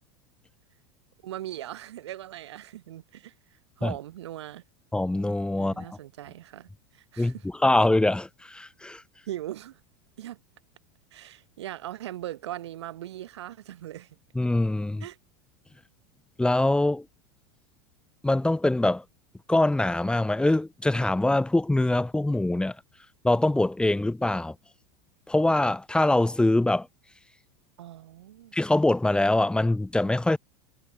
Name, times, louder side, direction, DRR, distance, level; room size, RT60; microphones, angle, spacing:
voice 1, 1.2-4.6 5.6-7.4 9.3-9.8 10.2-10.4 11.1-14.2 15.0-15.2 27.8-28.5, right 13 dB, 85° right, 6.6 m, -40 dB
voice 2, 4.9-6.0 7.2-9.0 14.4-15.0 16.4-17.1 18.2-19.0 19.5-22.8 23.2-24.6 25.3-26.9 28.5-30.4, left 2 dB, 5° left, 3.5 m, -23 dB
supercardioid pair, 110°, 14 cm